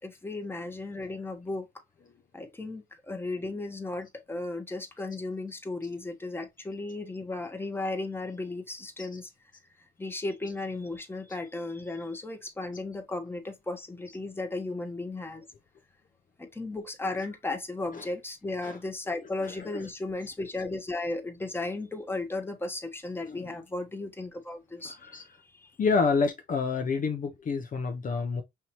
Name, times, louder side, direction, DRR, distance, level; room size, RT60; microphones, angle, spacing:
voice 1, 0.0-1.7 2.3-9.3 10.0-15.4 16.4-25.0, left 2 dB, 10° left, 1.1 m, -35 dB
voice 2, 19.4-19.8 23.2-23.6 24.8-25.2 25.8-28.4, left 4 dB, 40° left, 0.7 m, -29 dB
5.7 x 2.8 x 2.9 m
cardioid pair, 90°, 20 cm